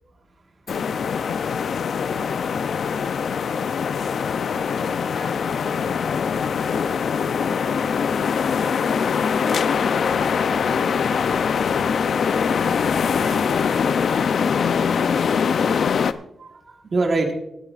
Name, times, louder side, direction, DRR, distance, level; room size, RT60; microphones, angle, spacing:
sound 1, 0.7-16.1, left 6 dB, 60° left, 0.5 m, -22 dB
voice 1, 9.2-14.9, left 3 dB, 35° left, 3 dB, 1.6 m, -40 dB
voice 2, 16.0-17.3, right 3 dB, 40° right, 2 dB, 1.6 m, -27 dB
25.5 x 9.0 x 2.5 m, 0.80 s
wide cardioid pair, 160°, 0 cm